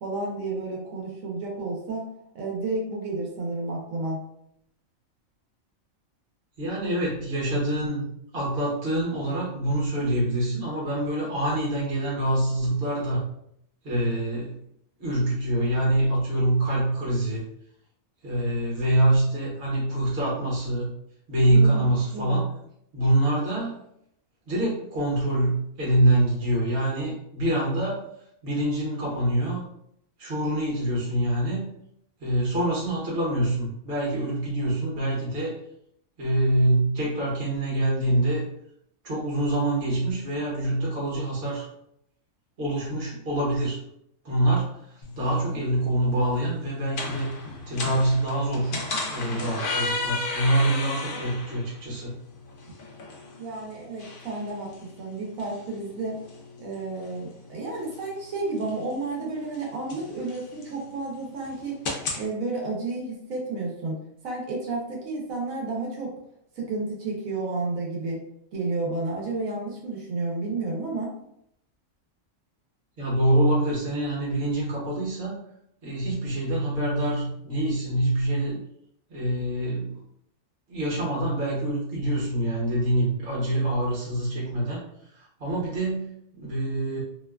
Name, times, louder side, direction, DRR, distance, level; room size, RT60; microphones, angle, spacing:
voice 1, 0.0-2.1 2.3-4.2 21.5-22.4 53.4-54.7 55.0-56.2 56.6-61.8 62.1-64.0 64.2-66.1 66.6-68.2 68.5-71.1, right 3 dB, 85° right, -2 dB, 1.1 m, -31 dB
voice 2, 6.6-8.1 8.3-13.2 13.8-14.6 15.0-17.4 18.2-20.9 21.3-22.5 22.9-23.8 24.5-28.1 28.4-29.6 30.2-31.7 32.2-35.6 36.2-38.4 39.0-41.7 42.6-43.8 44.2-44.7 45.2-47.3 47.7-48.7 49.1-52.1 73.0-75.4 75.8-78.6 79.1-80.0 80.7-84.8 85.1-87.0, right 1 dB, 50° right, -5 dB, 1.2 m, -25 dB
sound 1, 45.0-62.2, left 3 dB, 65° left, 0.5 m, -36 dB
2.8 x 2.2 x 2.3 m, 0.73 s
omnidirectional pair, 1.4 m